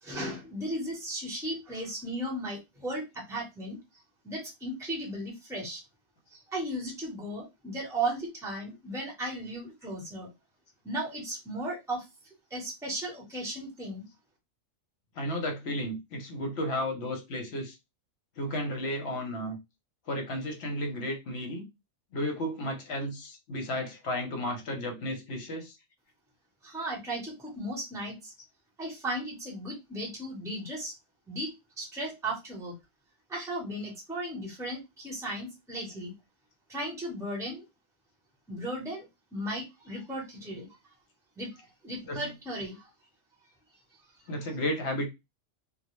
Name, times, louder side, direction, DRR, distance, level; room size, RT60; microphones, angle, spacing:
voice 1, 0.0-3.8 4.2-5.8 6.3-10.3 10.8-14.1 26.6-28.3 28.8-30.9 31.3-31.5 31.8-32.7 33.3-36.1 36.7-37.6 38.5-39.1 39.3-40.7 41.4-42.9, right 1 dB, 5° right, 0.8 m, -36 dB
voice 2, 15.2-17.8 18.4-19.6 20.1-21.7 22.1-25.8 42.0-42.3 44.3-45.1, left 1 dB, 60° left, 0.9 m, -33 dB
2.3 x 2.0 x 3.0 m
omnidirectional pair, 1.4 m